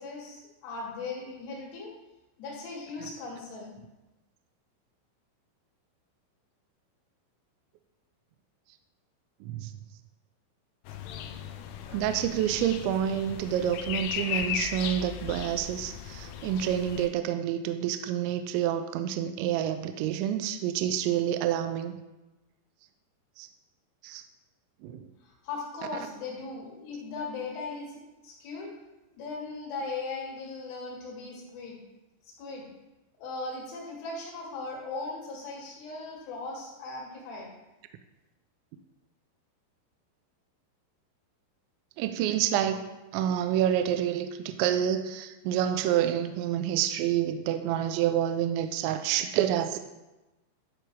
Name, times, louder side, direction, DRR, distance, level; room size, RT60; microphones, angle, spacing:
voice 1, 0.0-1.9 2.4-3.7 25.2-28.7 29.1-31.8 32.3-32.7 33.2-37.5, left 3 dB, 75° left, -3 dB, 4.6 m, -38 dB
sound 1, 10.9-17.1, left 8 dB, 90° left, 3.2 m, -36 dB
voice 2, 11.9-22.0 23.4-23.5 24.0-24.2 24.8-25.0 42.0-42.8 43.1-49.8, right 10 dB, 85° right, 8 dB, 2.7 m, -28 dB
12.0 x 5.2 x 4.8 m, 1.0 s
omnidirectional pair, 5.7 m